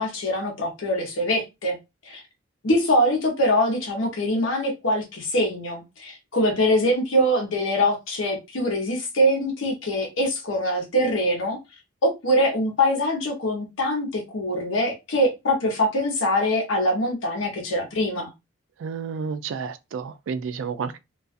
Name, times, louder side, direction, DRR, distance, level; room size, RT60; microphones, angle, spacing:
voice 1, 0.0-1.8 2.0-2.2 2.6-11.6 12.0-18.3, equal, 80° left, 0.8 m, -23 dB
voice 2, 18.8-21.0, right 6 dB, 75° right, 0.3 m, -31 dB
2.3 x 2.3 x 2.4 m
head